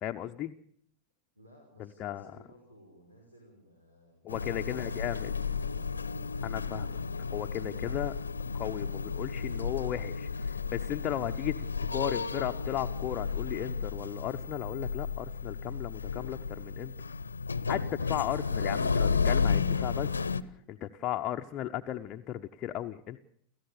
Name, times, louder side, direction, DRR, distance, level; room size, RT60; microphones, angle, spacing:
voice 1, 0.0-0.5 2.0-2.3 4.2-5.3 6.4-7.0 7.3-8.1 8.5-11.7 11.9-16.9 17.7-20.1 20.5-23.2, left 12 dB, 35° left, 5 dB, 0.9 m, -35 dB
voice 2, 1.4-5.4 5.7-5.9, equal, 80° right, 1 dB, 5.6 m, -58 dB
sound 1, 4.3-20.4, left 5 dB, 75° left, 0.9 m, -32 dB
30.0 x 14.5 x 6.9 m, 0.66 s
figure-of-eight pair, 90°, 0 cm